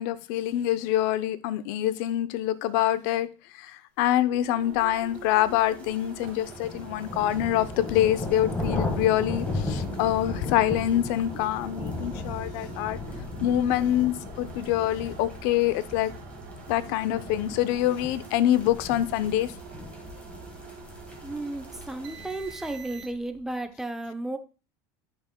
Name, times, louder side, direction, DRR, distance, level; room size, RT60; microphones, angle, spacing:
voice 1, 0.0-3.3 3.6-13.0 13.4-16.1 16.7-19.5, left 12 dB, 70° left, 0.6 m, -25 dB
sound 1, 4.4-23.4, right 6 dB, 80° right, 2.0 m, -45 dB
sound 2, 5.3-22.9, left 2 dB, 10° left, 1.6 m, -36 dB
voice 2, 21.2-24.4, right 2 dB, 5° right, 0.7 m, -34 dB
10.0 x 5.6 x 2.2 m
supercardioid pair, 130°, 11 cm